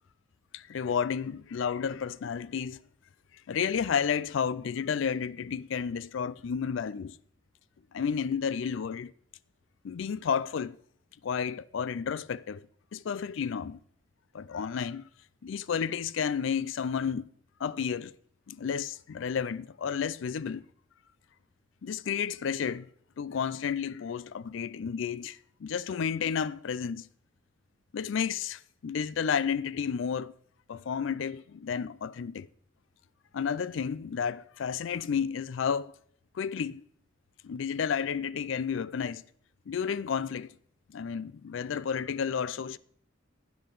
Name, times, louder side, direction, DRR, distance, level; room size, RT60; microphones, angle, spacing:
voice 1, 0.5-2.8 3.5-7.2 7.9-9.1 9.8-10.8 11.2-13.8 14.3-15.1 15.4-17.3 17.6-18.1 18.5-20.7 21.8-22.9 23.2-27.1 27.9-30.3 30.7-32.5 33.3-36.0 36.3-36.8 37.4-39.2 39.7-40.5 40.9-42.8, left 7 dB, 70° left, 0.4 m, -31 dB
12.0 x 8.5 x 3.9 m
head